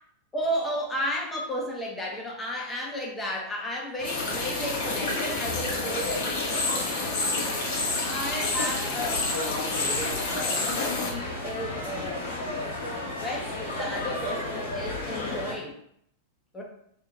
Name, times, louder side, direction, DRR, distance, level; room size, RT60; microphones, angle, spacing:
voice 1, 0.3-7.1 7.5-9.3 9.8-12.3 12.5-12.8 13.2-15.8 16.5-16.6, equal, 10° left, -2 dB, 1.0 m, -34 dB
sound 1, 4.0-15.5, left 2 dB, 70° left, 1.2 m, -34 dB
sound 2, 4.0-11.1, left 3 dB, 55° left, 0.9 m, -29 dB
2.9 x 2.7 x 3.7 m, 0.71 s
figure-of-eight pair, 90°, 0 cm